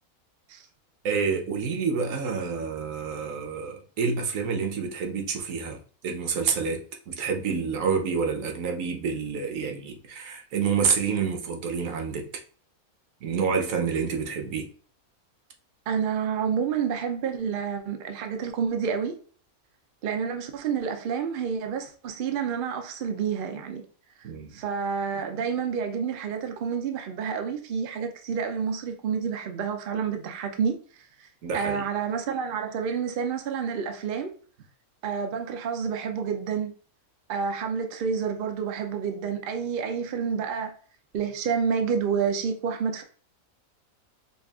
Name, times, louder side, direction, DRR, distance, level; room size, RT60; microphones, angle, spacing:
voice 1, 1.0-12.3 13.2-14.7 24.2-24.6 31.4-31.8, right 5 dB, 65° right, 1.0 m, -28 dB
voice 2, 15.9-19.1 20.0-23.8 24.5-30.8 31.5-34.3 35.0-36.7 37.3-40.7 41.1-43.0, right 6 dB, 80° right, 0.4 m, -29 dB
5.2 x 2.4 x 2.3 m
omnidirectional pair, 1.6 m